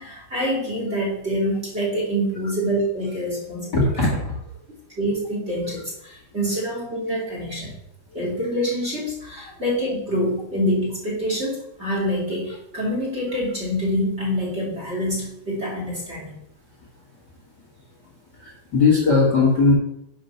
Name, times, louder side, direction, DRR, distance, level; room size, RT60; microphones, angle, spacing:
voice 1, 0.0-3.7 5.0-7.7 8.1-16.4, equal, 15° right, -4 dB, 2.9 m, -26 dB
voice 2, 3.7-4.4 9.4-9.5 18.3-19.7, left 3 dB, 60° left, -3 dB, 1.0 m, -19 dB
10.0 x 5.9 x 5.8 m, 0.78 s
omnidirectional pair, 4.9 m